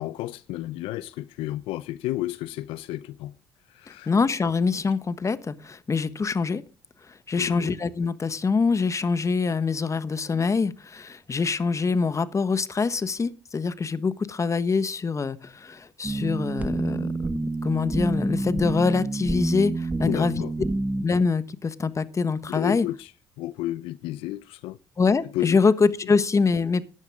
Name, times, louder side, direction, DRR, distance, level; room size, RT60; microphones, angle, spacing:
voice 1, 0.0-3.4 3.7-4.1 7.4-7.8 20.0-20.5 22.5-23.1 23.4-24.8 25.3-25.6 26.0-26.1, left 15 dB, 80° left, 0.5 m, -32 dB
voice 2, 4.1-6.6 7.1-17.3 17.6-20.4 21.0-22.9 25.0-26.8, left 4 dB, 35° left, 1.3 m, -24 dB
sound 1, 16.0-21.0, right 2 dB, 15° right, 1.5 m, -28 dB
15.5 x 11.0 x 3.6 m
supercardioid pair, 65°, 9 cm